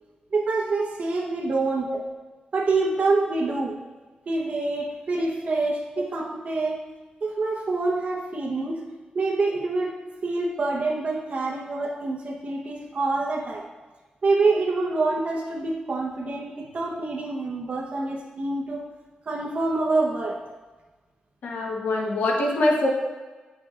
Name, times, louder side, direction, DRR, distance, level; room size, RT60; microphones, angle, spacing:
voice 1, 0.3-2.0 2.5-3.8 4.3-6.8 7.2-8.8 9.1-9.9 10.2-13.6 14.2-18.9 19.3-20.4, right 3 dB, 50° right, -3 dB, 1.0 m, -26 dB
voice 2, 21.4-22.9, left 1 dB, 90° left, -1 dB, 1.3 m, -24 dB
9.0 x 6.0 x 2.5 m, 1.3 s
wide cardioid pair, 110°, 3 cm